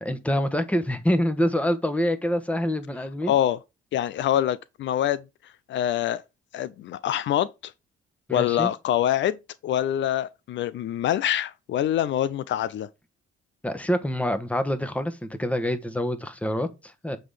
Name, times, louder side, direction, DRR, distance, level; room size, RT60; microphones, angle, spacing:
voice 1, 0.0-3.3 8.3-8.7 13.6-17.2, equal, 5° left, 1.2 m, -26 dB
voice 2, 3.3-3.6 3.9-5.2 5.7-6.2 6.5-7.7 8.3-9.4 9.6-12.9, left 11 dB, 70° left, 0.5 m, -25 dB
7.8 x 3.8 x 5.0 m
cardioid pair, 90°, 20 cm